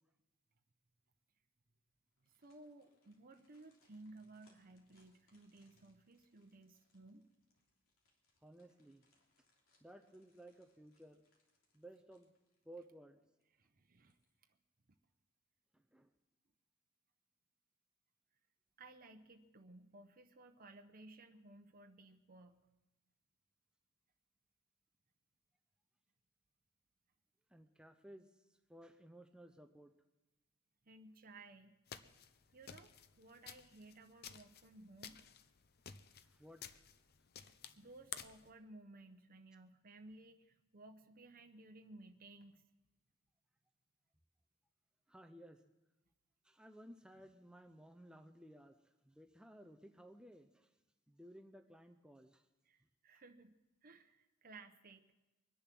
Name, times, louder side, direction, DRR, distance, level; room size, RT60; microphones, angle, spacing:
sound 1, 2.1-13.1 13.4-13.5 13.9-14.6 14.9-15.0, left 2 dB, 75° left, 3.2 m, -79 dB
voice 1, 2.2-7.3 13.5-14.2 14.5-14.6 18.8-22.6 30.8-31.8 32.5-35.2 37.4-42.6 52.6-53.5 53.8-55.3, right 2 dB, 45° right, 5 dB, 0.8 m, -58 dB
voice 2, 8.4-9.0 9.8-11.2 11.7-12.3 12.7-13.2 15.7-16.1 27.5-29.9 36.2-36.8 45.1-45.6 46.4-48.8 49.0-50.7 51.1-52.5, right 1 dB, 5° right, 5 dB, 0.6 m, -58 dB
sound 2, 31.9-38.5, left 8 dB, 50° left, 0.7 m, -53 dB
23.0 x 10.5 x 6.0 m, 1.1 s
head